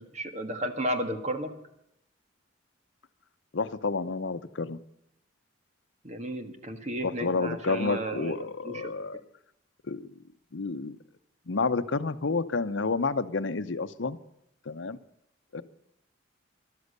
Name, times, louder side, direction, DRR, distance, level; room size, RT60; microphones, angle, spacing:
voice 1, 0.0-1.5 6.0-8.9, right 1 dB, 35° right, 7 dB, 1.6 m, -33 dB
voice 2, 3.5-4.8 7.0-9.2 9.9-10.1 10.5-11.0 11.5-14.2 14.7-15.0 15.5-15.6, left 4 dB, 75° left, 12 dB, 0.7 m, -30 dB
13.5 x 12.5 x 6.7 m, 0.78 s
head